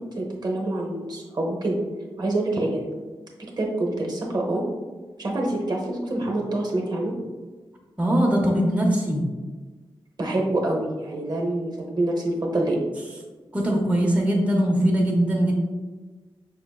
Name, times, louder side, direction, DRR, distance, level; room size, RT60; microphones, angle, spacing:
voice 1, 0.2-1.8 2.2-2.8 3.6-4.6 5.2-7.1 10.2-12.8, right 2 dB, 45° right, 0 dB, 0.8 m, -26 dB
voice 2, 8.0-9.2 13.5-15.5, equal, 15° right, -2 dB, 0.7 m, -21 dB
5.7 x 3.5 x 2.3 m, 1.3 s
wide cardioid pair, 100°, 10 cm